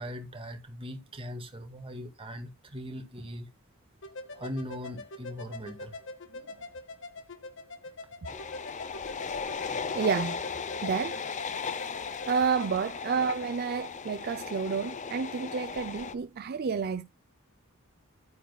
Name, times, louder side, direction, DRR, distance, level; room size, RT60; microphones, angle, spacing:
voice 1, 0.0-3.5 4.3-6.0, equal, 25° right, 2.0 m, -40 dB
sound 1, 4.0-12.7, left 2 dB, 60° left, 1.5 m, -44 dB
sound 2, 8.3-16.1, left 5 dB, 35° left, 0.6 m, -37 dB
voice 2, 9.9-10.4 10.8-11.2 12.3-17.0, right 5 dB, 45° right, 0.4 m, -30 dB
11.5 x 9.0 x 2.3 m
head